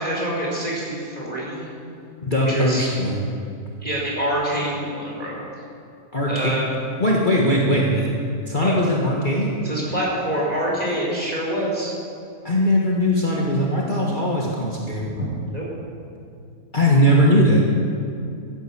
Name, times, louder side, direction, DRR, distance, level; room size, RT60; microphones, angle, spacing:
voice 1, 0.0-1.7 2.3-2.9 3.8-5.4 6.3-6.7 8.6-8.8 9.6-11.9 15.1-15.2 15.5-15.7, right 1 dB, 25° right, -5 dB, 4.6 m, -26 dB
voice 2, 2.2-3.2 6.1-6.5 7.0-8.1 8.5-9.5 12.4-15.1 16.7-17.6, equal, 35° left, -3 dB, 1.6 m, -19 dB
14.5 x 11.5 x 7.2 m, 2.5 s
omnidirectional pair, 1.6 m